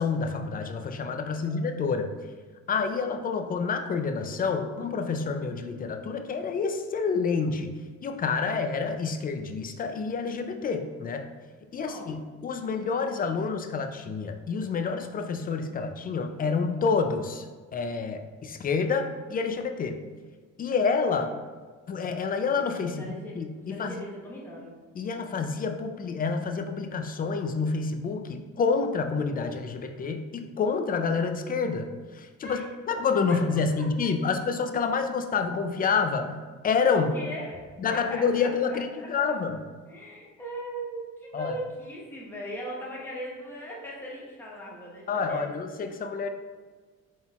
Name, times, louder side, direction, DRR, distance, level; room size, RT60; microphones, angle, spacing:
voice 1, 0.0-2.1 2.7-7.7 8.0-11.3 11.7-17.5 17.7-20.0 20.6-21.3 21.9-24.0 24.9-32.6 32.9-36.4 36.6-37.2 37.8-39.6 41.3-41.5 45.1-46.3, left 5 dB, 30° left, 6 dB, 0.4 m, -28 dB
voice 2, 1.2-1.8 8.4-8.5 11.8-12.1 21.1-21.2 23.0-24.8 32.4-32.6 33.3-33.4 33.8-34.1 37.1-39.3 39.9-45.4, equal, 5° left, -5 dB, 0.9 m, -39 dB
4.0 x 3.8 x 2.4 m, 1.4 s
cardioid pair, 90°, 30 cm